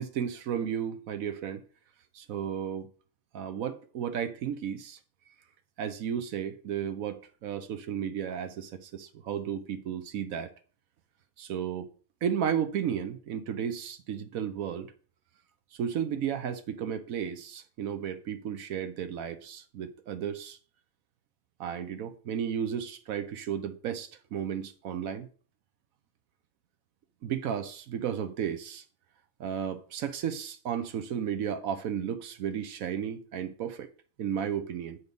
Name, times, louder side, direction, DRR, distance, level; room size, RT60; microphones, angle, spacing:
voice 1, 0.0-1.6 2.1-2.9 3.3-5.0 5.8-10.5 11.4-11.9 12.2-14.9 15.8-20.6 21.6-25.3 27.2-28.8 29.4-33.9 34.2-35.0, right 8 dB, 80° right, 1.1 m, -33 dB
8.0 x 4.2 x 5.2 m
omnidirectional pair, 1.4 m